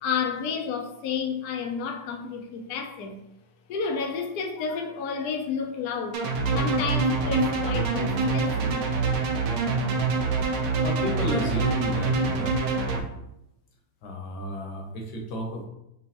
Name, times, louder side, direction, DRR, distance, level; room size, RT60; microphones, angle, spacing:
voice 1, 0.0-3.2 3.7-6.2 6.5-8.9, left 6 dB, 85° left, 3 dB, 0.8 m, -31 dB
sound 1, 6.1-13.0, right 4 dB, 65° right, 1.1 m, -25 dB
voice 2, 10.8-12.6 14.0-15.7, left 1 dB, 65° left, 2 dB, 1.3 m, -32 dB
5.3 x 3.0 x 2.8 m, 0.85 s
omnidirectional pair, 2.3 m